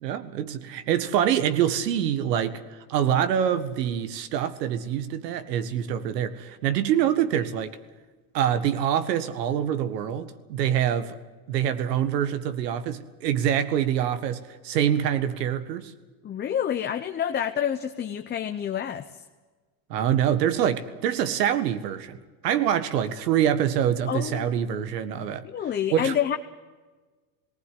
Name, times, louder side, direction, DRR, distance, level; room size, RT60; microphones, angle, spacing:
voice 1, 0.0-2.6 2.9-7.8 8.3-11.2 11.5-15.9 19.9-22.2 22.4-25.4 25.9-26.1, right 9 dB, 80° right, 12 dB, 1.8 m, -25 dB
voice 2, 16.2-19.0 24.1-24.4 25.1-26.4, left 9 dB, 20° left, 7 dB, 0.8 m, -28 dB
19.0 x 16.0 x 9.5 m, 1.3 s
supercardioid pair, 125°, 48 cm